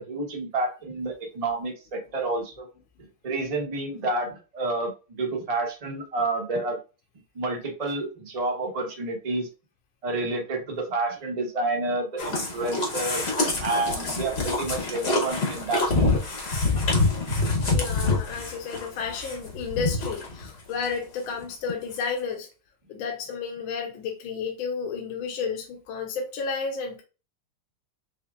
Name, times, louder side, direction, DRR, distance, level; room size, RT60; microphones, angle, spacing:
voice 1, 0.0-2.7 3.2-6.8 7.3-9.5 10.0-15.9, right 2 dB, 35° right, 0.6 m, -29 dB
sound 1, 12.2-20.5 20.8-20.9 21.4-21.5 21.7-21.8, left 3 dB, 45° left, 0.9 m, -26 dB
voice 2, 17.7-22.5 22.9-27.0, left 5 dB, 80° left, 1.5 m, -32 dB
4.3 x 3.3 x 2.3 m
omnidirectional pair, 2.2 m